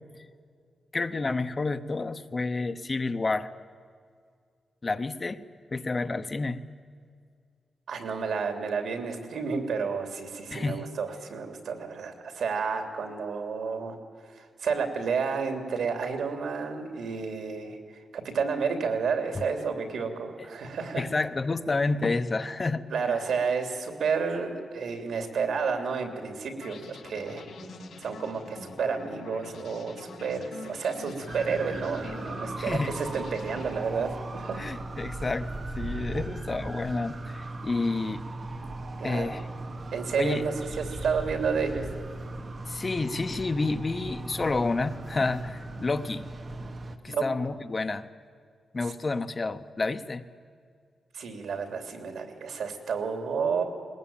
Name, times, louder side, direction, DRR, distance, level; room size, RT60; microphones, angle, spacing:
voice 1, 0.9-3.5 4.8-5.4 5.7-6.6 10.5-10.9 20.9-22.9 32.6-32.9 34.6-38.3 39.0-39.5 40.2-40.4 42.7-46.3 46.6-46.7 47.0-48.1 48.7-50.2, left 3 dB, 25° left, 10 dB, 0.8 m, -29 dB
voice 2, 7.9-14.0 14.2-21.0 22.9-27.5 28.0-34.6 36.1-36.2 39.0-39.3 39.9-41.9 47.1-47.2 51.1-53.6, right 5 dB, 85° right, 5 dB, 3.1 m, -31 dB
sound 1, 26.6-34.3, left 3 dB, 75° left, 5.0 m, -45 dB
sound 2, 31.3-47.0, right 2 dB, 35° right, 1.3 m, -38 dB
21.5 x 20.5 x 9.0 m, 2.1 s
wide cardioid pair, 150°, 0 cm